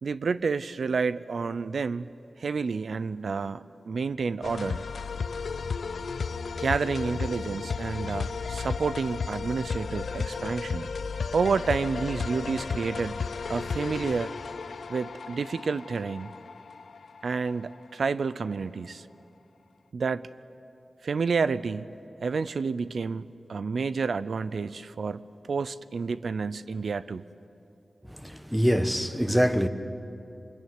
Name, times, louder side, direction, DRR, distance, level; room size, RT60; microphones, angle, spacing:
voice 1, 0.0-2.1 2.4-4.8 6.6-10.9 11.3-13.2 13.5-14.3 14.9-16.3 17.2-19.1 19.9-20.3 21.0-21.9 22.2-23.2 23.5-27.2, right 5 dB, 80° right, 0.5 m, -29 dB
sound 1, 4.4-17.8, left 5 dB, 85° left, 0.7 m, -34 dB
voice 2, 28.2-29.7, equal, 5° right, 1.1 m, -24 dB
25.0 x 21.5 x 9.5 m
wide cardioid pair, 115°, 0 cm